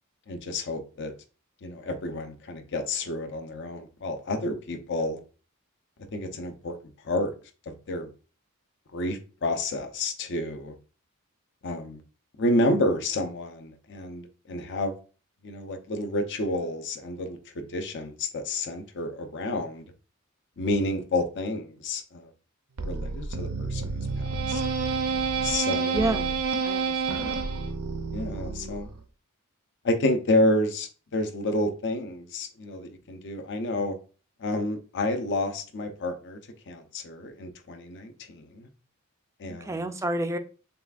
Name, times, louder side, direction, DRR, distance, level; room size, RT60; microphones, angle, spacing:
voice 1, 0.3-1.1 1.6-5.2 6.1-6.8 7.0-7.3 7.7-8.1 8.9-10.7 11.6-12.0 12.4-15.0 15.4-19.9 20.6-22.3 22.8-24.6 25.4-26.2 27.2-27.3 28.1-28.9 29.8-34.0 34.4-36.4 36.7-38.7 39.4-39.9, left 1 dB, 55° left, 0.6 m, -30 dB
sound 1, 22.8-29.0, right 4 dB, 85° right, 0.6 m, -29 dB
voice 2, 25.9-26.4 26.6-27.4 39.4-40.4, right 1 dB, 15° right, 0.4 m, -30 dB
6.7 x 2.3 x 2.4 m
head